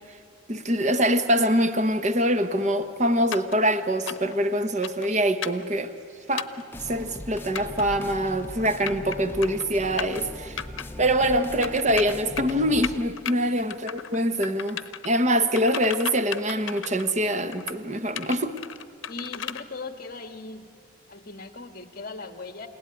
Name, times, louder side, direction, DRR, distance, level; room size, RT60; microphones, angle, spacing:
voice 1, 0.5-5.9 6.3-6.5 6.8-10.6 11.0-18.6, equal, 35° right, 9 dB, 1.1 m, -24 dB
sound 1, 3.3-3.6 4.1-4.4 4.8-5.1 5.4-5.7 6.4-6.6 7.6-7.8 8.6-9.2 9.4-9.7 10.0-10.2 10.6-10.9 11.6-12.5 12.8-13.3 13.7-14.2 14.4-15.1 15.6-17.1 17.5-17.8 18.2-19.6, left 9 dB, 75° left, 0.9 m, -34 dB
sound 2, 6.7-13.1, left 1 dB, 10° left, 0.7 m, -39 dB
voice 2, 19.1-20.7 21.1-22.7, left 3 dB, 45° left, 8 dB, 1.6 m, -39 dB
29.5 x 17.0 x 9.7 m, 2.5 s
head